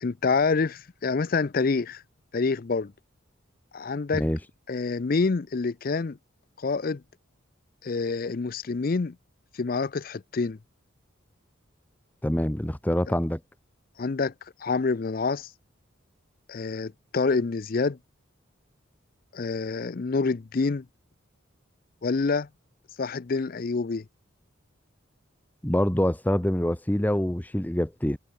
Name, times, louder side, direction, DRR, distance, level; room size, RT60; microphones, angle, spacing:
voice 1, 0.0-2.0 2.3-2.9 3.7-4.2 4.7-6.2 6.6-7.0 7.8-9.2 9.5-10.6 14.0-14.3 14.6-15.5 16.5-18.0 19.3-20.8 22.0-22.5 23.0-24.0, left 4 dB, 45° left, 0.5 m, -27 dB
voice 2, 12.2-13.4 25.6-28.2, left 1 dB, 10° left, 0.7 m, -25 dB
head